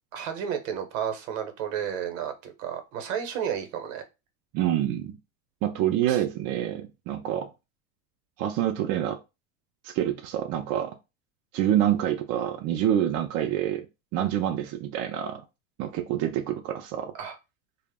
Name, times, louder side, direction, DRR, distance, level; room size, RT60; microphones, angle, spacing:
voice 1, 0.1-4.0 6.1-6.2 17.1-17.4, right 8 dB, 65° right, 7 dB, 0.8 m, -32 dB
voice 2, 4.5-5.1 5.6-7.5 8.4-9.2 9.8-10.9 11.5-13.9 14.1-15.4 15.8-17.1, right 11 dB, 40° right, 4 dB, 0.4 m, -27 dB
2.1 x 2.0 x 3.4 m, 0.25 s
hypercardioid pair, 100°, 40 cm